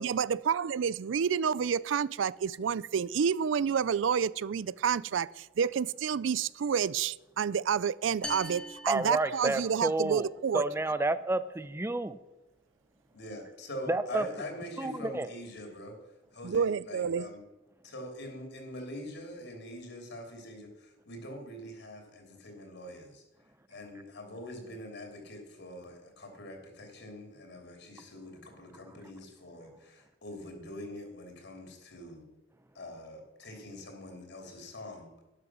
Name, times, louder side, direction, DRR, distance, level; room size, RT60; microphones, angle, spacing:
voice 1, 0.0-10.6 16.4-17.3, right 7 dB, 80° right, 0.4 m, -29 dB
sound 1, 8.2-10.0, left 1 dB, 5° left, 1.3 m, -42 dB
voice 2, 8.9-12.2 13.9-14.3 14.8-15.3 28.9-29.0, right 2 dB, 15° right, 0.6 m, -30 dB
voice 3, 13.1-16.0 16.3-17.4 17.8-23.2 23.7-32.3 32.7-35.1, left 1 dB, 65° left, 3.0 m, -44 dB
12.0 x 11.0 x 6.2 m
head